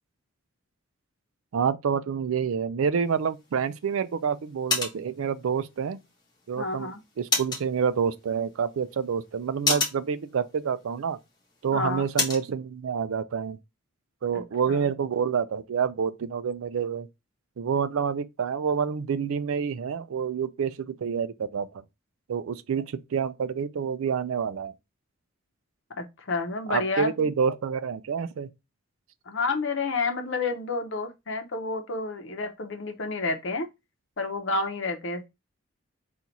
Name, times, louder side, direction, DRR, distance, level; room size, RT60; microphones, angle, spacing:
voice 1, 1.5-6.0 6.5-11.2 11.6-13.6 14.2-17.1 17.6-21.8 22.3-24.7 26.7-28.5, right 6 dB, 80° right, 0.4 m, -28 dB
sound 1, 3.0-12.5, left 4 dB, 20° left, 0.9 m, -34 dB
voice 2, 6.6-7.0 11.7-12.1 14.3-14.4 14.7-14.8 26.0-27.3 29.3-33.7 34.2-35.3, left 3 dB, 60° left, 0.7 m, -30 dB
4.4 x 2.4 x 3.9 m
head